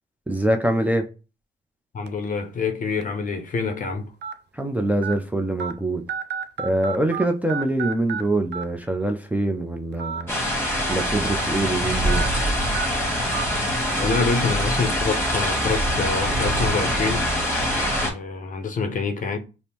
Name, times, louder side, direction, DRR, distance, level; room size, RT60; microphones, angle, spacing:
voice 1, 0.3-1.1 4.5-6.0 6.6-10.4 10.9-12.3, right 1 dB, 5° right, 0.4 m, -24 dB
voice 2, 1.9-4.1 14.0-17.3 18.0-19.4, left 4 dB, 40° left, 0.6 m, -26 dB
sound 1, 2.1-2.3 3.0-3.1 4.2-4.3 5.0-5.1 5.6-5.7 6.1-7.2 7.5-8.2 8.5-8.6 9.9-10.2 10.6-10.7 12.1-12.3 12.7-12.9 13.3-13.5 14.1-14.2, right 7 dB, 60° right, 0.5 m, -30 dB
sound 2, 10.3-18.1, equal, 10° left, 1.3 m, -24 dB
5.1 x 2.0 x 2.9 m
cardioid pair, 90°, 20 cm